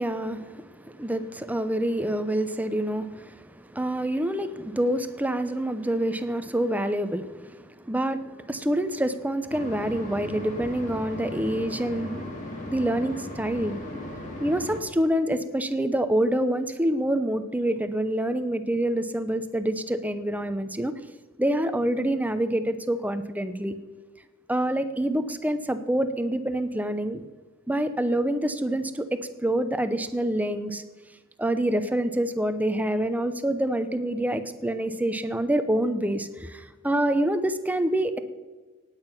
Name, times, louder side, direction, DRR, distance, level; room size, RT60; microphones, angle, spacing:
voice 1, 0.0-12.3 12.7-13.8 14.4-20.9 21.4-23.8 24.5-27.2 27.7-30.8 31.4-38.2, right 1 dB, 5° right, 10 dB, 0.7 m, -27 dB
sound 1, 9.5-14.8, left 1 dB, 35° left, 3.4 m, -37 dB
18.0 x 8.9 x 5.9 m, 1.3 s
head